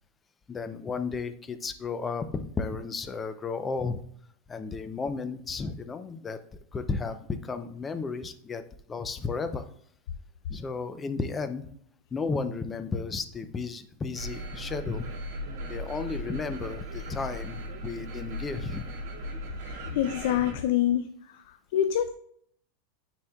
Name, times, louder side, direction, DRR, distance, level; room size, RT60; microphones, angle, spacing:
voice 1, 0.5-4.0 4.5-6.4 6.7-8.6 8.9-9.7 10.5-11.7 12.1-15.1 15.7-18.9 20.5-20.6, left 4 dB, 15° left, 10 dB, 0.5 m, -33 dB
sound 1, 14.1-20.5, equal, 60° right, 2.4 m, -37 dB
voice 2, 19.7-21.4 21.7-22.1, left 11 dB, 70° left, 9 dB, 0.4 m, -26 dB
9.6 x 4.3 x 2.3 m, 0.66 s
supercardioid pair, 140°, 0 cm